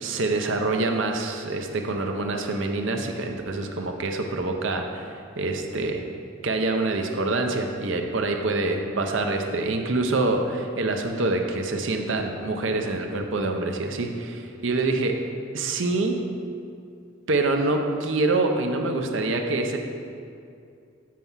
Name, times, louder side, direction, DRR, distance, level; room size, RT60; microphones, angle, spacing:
voice 1, 0.0-6.0 6.4-15.2 15.5-16.2 17.3-19.8, right 2 dB, 70° right, 4 dB, 0.7 m, -26 dB
7.5 x 4.7 x 5.6 m, 2.5 s
head